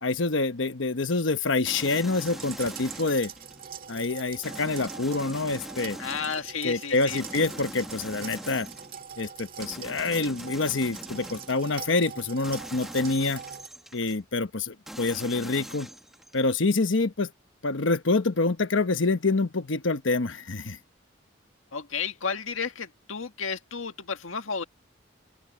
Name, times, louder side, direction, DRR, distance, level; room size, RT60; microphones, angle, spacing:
voice 1, 0.0-3.3 3.9-6.0 6.6-8.7 9.2-13.4 13.9-15.9 16.3-17.3 17.6-20.8, left 3 dB, 70° left, 1.1 m, -26 dB
sound 1, 1.7-3.7 4.4-6.5 7.1-9.0 9.6-11.8 12.4-14.2 14.9-16.5, equal, ahead, 1.0 m, -43 dB
sound 2, 2.2-13.7, right 7 dB, 45° right, 1.7 m, -43 dB
voice 2, 6.0-7.2 21.7-24.6, left 6 dB, 90° left, 1.8 m, -32 dB
open air
head